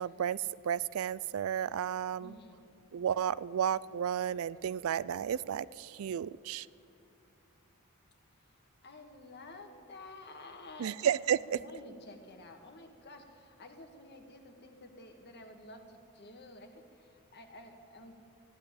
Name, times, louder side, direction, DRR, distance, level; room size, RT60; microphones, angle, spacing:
voice 1, 0.0-2.4 2.9-6.7 10.8-11.6, right 9 dB, 70° right, 20 dB, 0.3 m, -32 dB
voice 2, 2.2-2.6 8.8-11.2 11.5-18.2, left 2 dB, 50° left, 5 dB, 1.6 m, -51 dB
15.5 x 10.5 x 8.9 m, 2.6 s
head